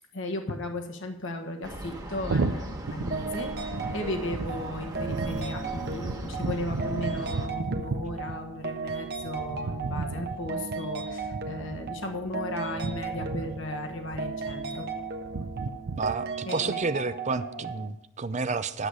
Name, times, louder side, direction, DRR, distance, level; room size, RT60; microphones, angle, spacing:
voice 1, 0.1-14.9 16.4-16.8, left 1 dB, 60° left, 4 dB, 1.4 m, -36 dB
sound 1, 1.6-7.5, right 1 dB, 15° right, 1.3 m, -39 dB
sound 2, 2.2-16.1, right 3 dB, 85° right, 0.6 m, -35 dB
sound 3, 3.1-17.9, right 4 dB, 50° right, 1.1 m, -36 dB
voice 2, 16.0-18.9, right 4 dB, 35° right, 12 dB, 0.5 m, -30 dB
12.5 x 8.0 x 4.9 m, 0.84 s
head